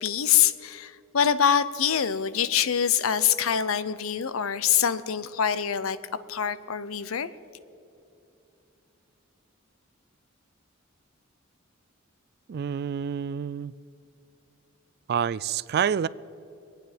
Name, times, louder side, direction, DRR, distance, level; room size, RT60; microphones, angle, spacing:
voice 1, 0.0-6.0 6.3-7.3, left 8 dB, 80° left, 15 dB, 0.6 m, -24 dB
voice 2, 12.5-13.7 15.1-16.1, right 7 dB, 50° right, 19 dB, 0.3 m, -27 dB
24.0 x 9.4 x 5.1 m, 2.8 s
head